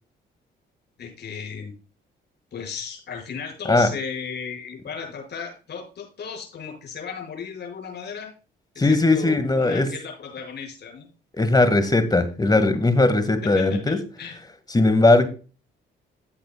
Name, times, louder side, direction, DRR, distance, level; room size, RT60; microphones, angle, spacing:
voice 1, 1.0-1.7 2.5-8.3 8.7-11.1 13.4-14.4, left 6 dB, 60° left, 0 dB, 5.9 m, -35 dB
voice 2, 8.8-9.9 11.3-14.0 14.7-15.3, left 2 dB, 20° left, 10 dB, 1.9 m, -19 dB
14.5 x 8.5 x 2.3 m, 0.35 s
cardioid pair, 90°, 20 cm